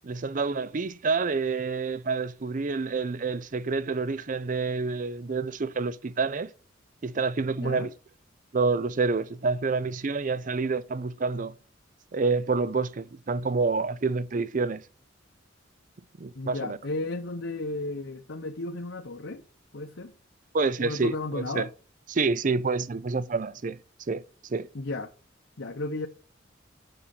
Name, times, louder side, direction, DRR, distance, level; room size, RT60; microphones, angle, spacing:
voice 1, 0.0-6.5 7.0-7.9 8.5-11.5 12.1-14.8 16.2-16.8 20.5-21.7 22.1-23.8 24.1-24.2 24.5-24.7, right 4 dB, 40° right, 0.5 m, -28 dB
voice 2, 7.6-7.9 16.3-19.4 19.7-20.1 20.8-21.7 24.7-25.1 25.6-26.1, left 2 dB, 65° left, 0.8 m, -34 dB
7.7 x 7.1 x 6.5 m
head